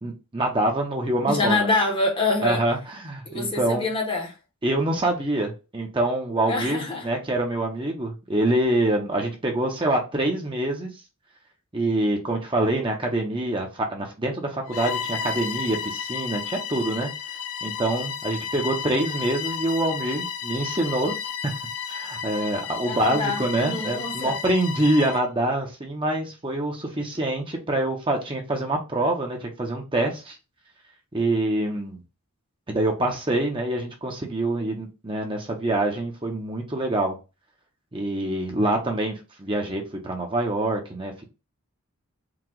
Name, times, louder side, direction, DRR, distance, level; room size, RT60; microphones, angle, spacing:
voice 1, 0.0-1.7 2.4-3.9 4.6-10.9 11.7-17.1 17.6-21.1 21.4-21.6 21.9-30.4 31.1-32.0 32.7-37.2 37.9-41.3, right 1 dB, 25° right, 0.8 m, -25 dB
voice 2, 1.3-2.6 3.3-4.4 6.5-7.1 22.8-24.4, left 2 dB, 25° left, 0.9 m, -26 dB
Bowed string instrument, 14.7-25.3, left 7 dB, 70° left, 0.5 m, -32 dB
4.7 x 2.3 x 3.8 m
head